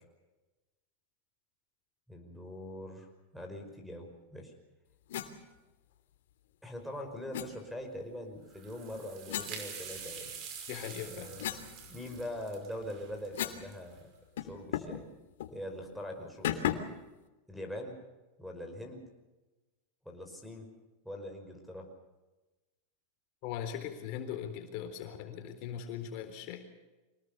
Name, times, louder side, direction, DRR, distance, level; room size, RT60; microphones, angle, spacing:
voice 1, 2.1-4.5 6.6-10.4 11.1-11.5 11.9-14.1 14.4-15.0 15.5-16.8 17.5-18.0 18.4-19.0 20.1-20.7 21.0-21.9, left 1 dB, ahead, 0 dB, 5.4 m, -43 dB
sound 1, 5.1-5.3 7.3-7.5 9.3-10.3 10.8-13.7 14.0-14.1 14.4-15.0 15.4-15.6 16.4-17.0, left 11 dB, 75° left, 3.1 m, -37 dB
sound 2, 8.5-14.0, right 6 dB, 40° right, 5.7 m, -46 dB
voice 2, 10.7-11.3 23.4-26.7, left 9 dB, 50° left, 6 dB, 3.9 m, -40 dB
25.5 x 19.0 x 7.0 m, 1.1 s
supercardioid pair, 135°, 0 cm